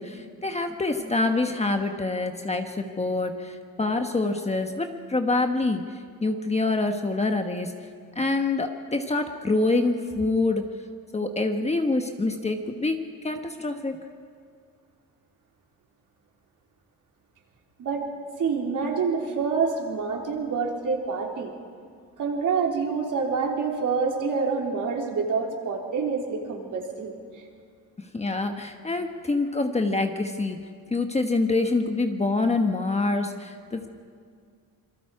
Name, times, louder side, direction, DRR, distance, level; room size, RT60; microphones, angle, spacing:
voice 1, 0.0-5.8 6.2-7.7 8.1-10.7 11.1-14.0 28.0-33.9, left 3 dB, 15° left, 5 dB, 1.2 m, -26 dB
voice 2, 18.4-21.5 22.2-27.4, right 5 dB, 55° right, 0 dB, 3.7 m, -27 dB
27.0 x 22.0 x 4.9 m, 2.2 s
cardioid pair, 115°, 38 cm